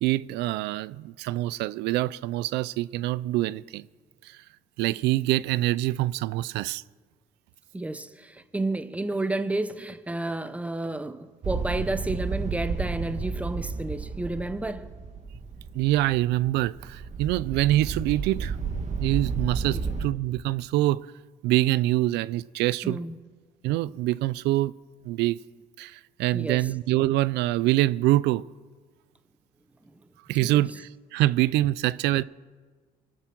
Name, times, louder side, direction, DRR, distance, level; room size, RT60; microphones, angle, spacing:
voice 1, 0.0-3.9 4.2-4.4 4.8-6.8 15.7-18.6 19.0-21.1 21.4-23.0 23.6-24.7 25.1-25.4 25.8-28.4 30.3-32.2, right 16 dB, 85° right, 0.4 m, -25 dB
voice 2, 7.7-14.9 19.7-20.0 22.8-23.2 26.3-26.6 30.4-30.6, right 2 dB, 10° right, 0.9 m, -31 dB
sound 1, 11.4-20.1, right 5 dB, 45° right, 1.7 m, -32 dB
24.5 x 9.3 x 6.1 m
cardioid pair, 110°, 17 cm